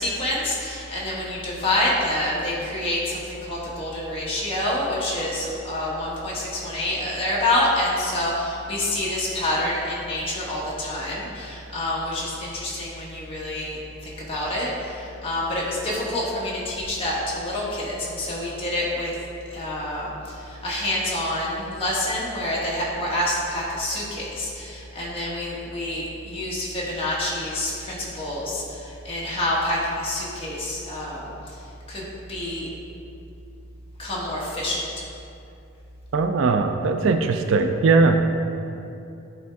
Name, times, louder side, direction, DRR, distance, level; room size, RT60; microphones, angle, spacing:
voice 1, 0.0-19.1 19.5-31.6 31.9-32.7 34.0-35.0, left 1 dB, 25° left, -6 dB, 1.4 m, -27 dB
voice 2, 36.1-38.2, right 4 dB, 60° right, 6 dB, 0.4 m, -19 dB
10.5 x 3.6 x 3.5 m, 2.7 s
head